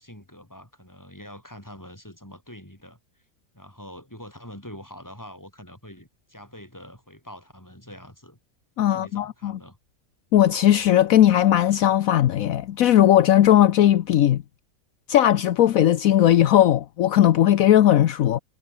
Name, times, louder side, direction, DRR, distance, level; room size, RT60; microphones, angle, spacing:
voice 1, 0.0-3.0 3.5-8.4 8.8-9.8, equal, 10° left, 7.1 m, -44 dB
voice 2, 8.8-9.6 10.3-14.4 15.1-18.4, left 11 dB, 70° left, 1.2 m, -18 dB
omnidirectional pair, 1.5 m